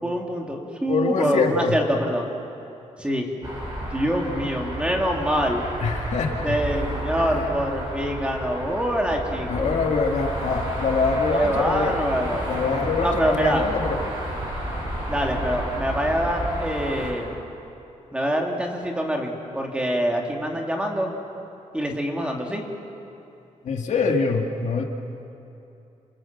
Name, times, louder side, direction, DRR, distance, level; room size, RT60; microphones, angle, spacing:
voice 1, 0.0-2.3 3.0-3.3 3.8-5.7 6.4-9.7 11.3-12.5 13.0-13.7 15.1-17.4 18.1-21.1 21.7-22.6, equal, 10° right, 1 dB, 2.7 m, -25 dB
voice 2, 0.9-1.7 5.8-6.5 7.2-7.5 9.5-11.9 12.5-14.0 23.6-24.8, left 4 dB, 65° left, 1 dB, 2.4 m, -24 dB
sound 1, 3.4-17.1, right 1 dB, 30° right, 7.7 m, -31 dB
28.5 x 26.5 x 7.5 m, 2.8 s
wide cardioid pair, 155°, 13 cm